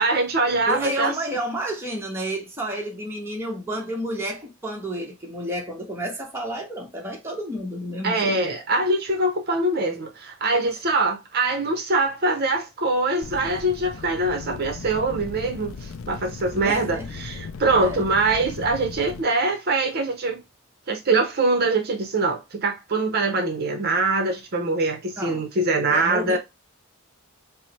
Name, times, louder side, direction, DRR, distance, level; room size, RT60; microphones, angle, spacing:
voice 1, 0.0-1.1 8.0-20.4 20.9-26.4, right 2 dB, 50° right, 0.6 m, -23 dB
voice 2, 0.7-8.4 16.6-17.1 17.7-18.1 25.2-25.4 25.9-26.4, right 1 dB, 10° right, 0.9 m, -30 dB
sound 1, 13.2-19.2, left 4 dB, 75° left, 0.4 m, -37 dB
4.7 x 2.0 x 4.1 m
head